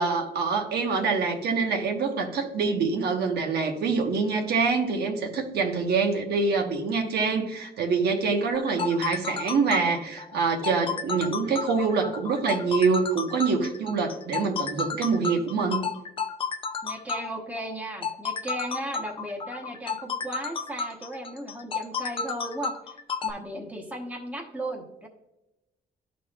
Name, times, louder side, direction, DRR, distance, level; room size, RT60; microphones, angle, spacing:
voice 1, 0.0-15.9, right 4 dB, 85° right, 4 dB, 1.1 m, -25 dB
sound 1, 8.5-23.3, left 5 dB, 35° left, 0.5 m, -32 dB
voice 2, 16.8-22.7 23.2-25.1, right 1 dB, 10° right, 1 dB, 1.0 m, -36 dB
12.5 x 4.2 x 2.3 m, 0.95 s
wide cardioid pair, 170°, 16 cm